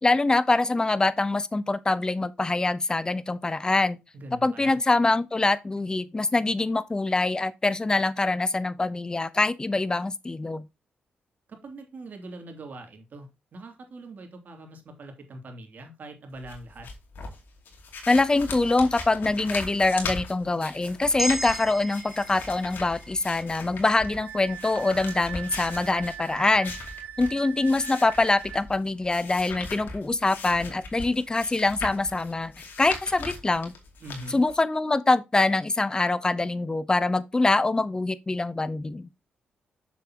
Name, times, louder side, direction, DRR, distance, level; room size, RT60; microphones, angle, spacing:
voice 1, 0.0-4.0 4.4-10.7 18.1-26.7 27.2-32.5 32.8-33.7 34.3-39.1, left 2 dB, 20° left, 0.8 m, -24 dB
voice 2, 4.1-4.8 11.5-16.9 34.0-34.4, right 2 dB, 55° right, 2.8 m, -42 dB
sound 1, 16.4-34.5, left 4 dB, 70° left, 2.6 m, -39 dB
sound 2, 21.2-25.4, right 1 dB, 10° right, 0.8 m, -37 dB
Wind instrument woodwind instrument, 23.9-28.6, right 10 dB, 70° right, 1.0 m, -41 dB
7.1 x 6.9 x 2.9 m
cardioid pair, 85°, 4 cm